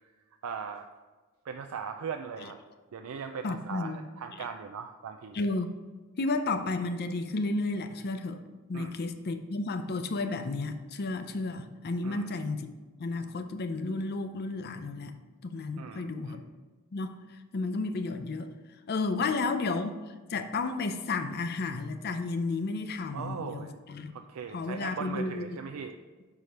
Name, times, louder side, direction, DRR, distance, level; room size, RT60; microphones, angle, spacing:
voice 1, 0.4-0.9 1.4-2.6 2.9-5.4 8.7-9.0 12.0-12.3 15.8-16.4 19.2-19.4 23.1-23.7 24.1-26.0, right 6 dB, 85° right, 6 dB, 0.4 m, -39 dB
voice 2, 3.4-4.0 5.3-5.7 6.2-8.4 8.7-12.7 13.0-15.1 15.4-16.4 16.9-17.1 17.5-18.5 18.9-24.1 24.5-25.4, left 3 dB, 50° left, 8 dB, 0.5 m, -32 dB
5.7 x 4.8 x 5.2 m, 1.3 s
head